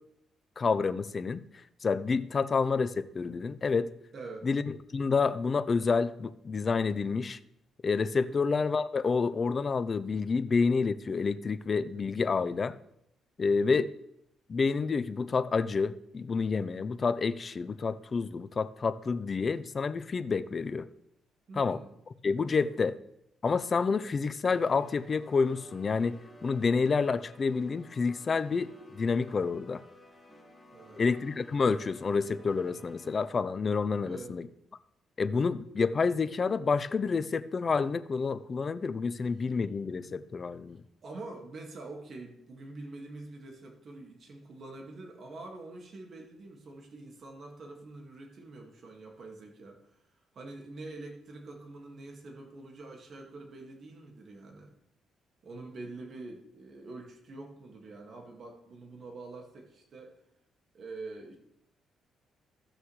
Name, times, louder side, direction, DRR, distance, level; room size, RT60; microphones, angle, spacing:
voice 1, 0.6-1.4 1.8-3.9 4.4-4.6 4.9-7.4 7.8-12.7 13.4-13.9 14.5-20.9 21.5-21.8 22.2-22.9 23.4-29.8 31.0-34.5 35.2-40.8, left 4 dB, 40° left, 13 dB, 0.6 m, -29 dB
voice 2, 2.3-2.6 4.1-4.5 8.1-8.4 13.5-13.8 21.5-21.9 22.5-22.8 30.7-31.1 34.0-34.3 39.2-39.3 40.0-40.2 41.0-50.0 50.3-54.8 55.4-60.2 60.7-61.4, right 2 dB, 50° right, 1 dB, 1.9 m, -46 dB
sound 1, 24.5-33.3, left 1 dB, 10° left, 2.1 m, -55 dB
16.5 x 6.3 x 3.2 m, 0.79 s
cardioid pair, 90°, 0 cm